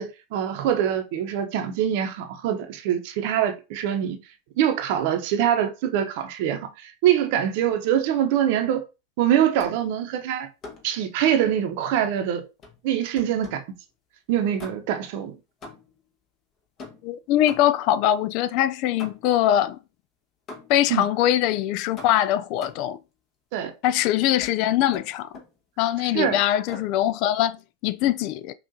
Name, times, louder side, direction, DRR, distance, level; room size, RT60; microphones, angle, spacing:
voice 1, 0.0-4.2 4.6-8.8 9.2-10.5 10.8-12.4 12.8-13.6 14.3-15.3 20.9-21.0 23.5-23.7 26.1-26.4, right 10 dB, 60° right, 0.7 m, -24 dB
sound 1, 9.6-9.9 10.6-11.0 12.6-13.7 14.6-15.1 15.6-16.1 16.8-17.9 19.0-19.5 20.5-20.9 22.0-23.0 24.4-24.6 24.9-25.6 26.7-27.0, left 2 dB, 35° left, 1.3 m, -44 dB
voice 2, 17.0-19.8 20.7-23.0 23.8-25.3 25.8-28.5, left 12 dB, 55° left, 0.3 m, -22 dB
5.3 x 2.4 x 2.7 m
hypercardioid pair, 95°, 0 cm